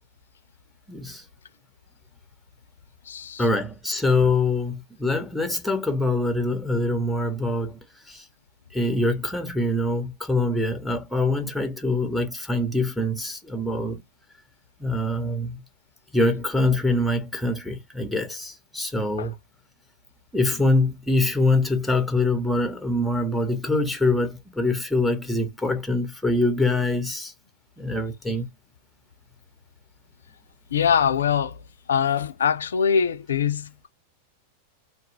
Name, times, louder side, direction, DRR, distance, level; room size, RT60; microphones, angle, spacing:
voice 1, 0.9-1.2 3.4-7.8 8.1-8.2 8.7-14.0 14.8-15.6 16.1-19.3 20.3-27.3 27.8-28.5, left 2 dB, 5° left, 0.7 m, -24 dB
voice 2, 3.1-3.4 19.2-19.3 30.7-31.6 31.9-33.9, left 7 dB, 75° left, 0.4 m, -23 dB
2.3 x 2.0 x 2.8 m
figure-of-eight pair, 95°, 0 cm